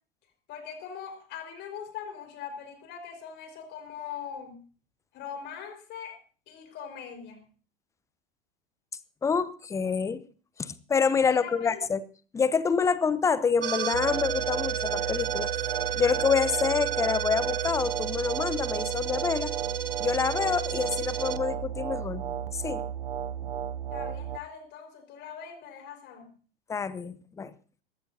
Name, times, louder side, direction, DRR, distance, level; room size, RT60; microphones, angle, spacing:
voice 1, 0.5-4.6 5.1-6.2 6.5-7.4 11.3-11.8 23.9-26.3, left 7 dB, 35° left, 6 dB, 4.8 m, -41 dB
voice 2, 9.2-10.2 10.6-12.0 12.3-15.5 16.0-19.5 20.0-22.2 22.5-22.8 26.7-27.5, left 5 dB, 10° left, 18 dB, 0.7 m, -27 dB
sound 1, 13.6-24.4, right 9 dB, 70° right, 0.8 m, -31 dB
21.0 x 15.5 x 2.8 m, 0.39 s
figure-of-eight pair, 90°, 30 cm